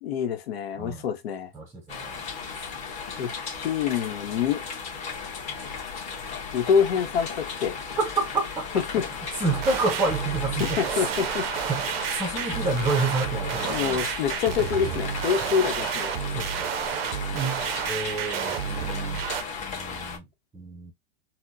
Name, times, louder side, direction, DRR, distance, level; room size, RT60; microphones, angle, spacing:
voice 1, 0.0-1.5 3.2-3.3 3.6-4.6 6.5-7.8 8.9-9.0 10.6-11.5 13.6-16.1, left 7 dB, 85° left, 0.8 m, -26 dB
voice 2, 1.5-2.7 8.0-8.7 9.1-11.1 11.7-14.0 15.4-15.5 16.3-16.7 17.3-19.3 19.6-20.3 20.5-20.9, right 3 dB, 10° right, 0.5 m, -30 dB
sound 1, 1.9-20.2, left 5 dB, 25° left, 1.0 m, -35 dB
sound 2, 9.5-19.4, right 10 dB, 75° right, 0.5 m, -31 dB
4.2 x 2.0 x 2.6 m
supercardioid pair, 150°, 30 cm